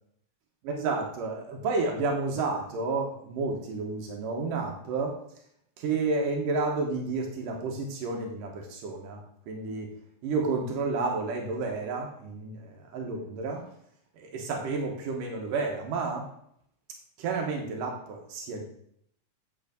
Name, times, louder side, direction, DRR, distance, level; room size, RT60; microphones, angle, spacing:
voice 1, 0.6-5.2 5.8-9.9 10.2-13.7 14.1-16.3 17.2-18.6, right 3 dB, 85° right, 1 dB, 3.1 m, -31 dB
8.7 x 8.4 x 5.2 m, 0.70 s
omnidirectional pair, 3.7 m